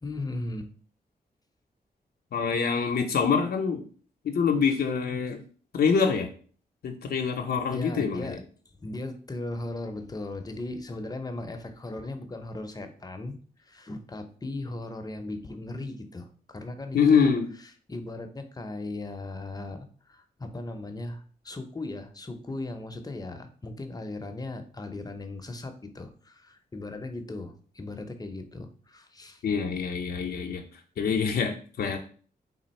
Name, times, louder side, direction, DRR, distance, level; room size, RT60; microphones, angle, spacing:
voice 1, 0.0-0.7 7.7-8.4 8.8-13.3 13.7-17.3 17.9-29.4, left 2 dB, 25° left, 6 dB, 0.6 m, -37 dB
voice 2, 2.3-3.8 4.2-5.4 5.7-6.3 6.8-8.4 16.9-17.5 29.4-30.6 31.0-32.0, left 6 dB, 75° left, 4 dB, 0.5 m, -25 dB
3.4 x 2.4 x 4.2 m, 0.43 s
cardioid pair, 80°, 16 cm